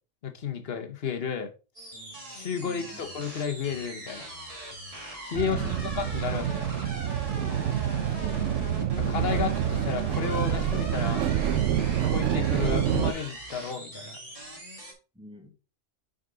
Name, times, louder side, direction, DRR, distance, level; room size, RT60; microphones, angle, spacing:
voice 1, 0.2-1.5 2.3-4.3 5.2-6.7 9.1-11.2 12.0-14.2, left 7 dB, 55° left, 1.1 m, -32 dB
sound 1, 1.8-14.9, right 1 dB, 30° right, 2.0 m, -40 dB
voice 2, 2.6-3.1 5.5-6.2 8.2-8.8 15.1-15.5, left 1 dB, 5° right, 1.1 m, -46 dB
sound 2, 5.3-13.1, right 10 dB, 75° right, 0.9 m, -27 dB
6.4 x 5.2 x 3.8 m
omnidirectional pair, 1.3 m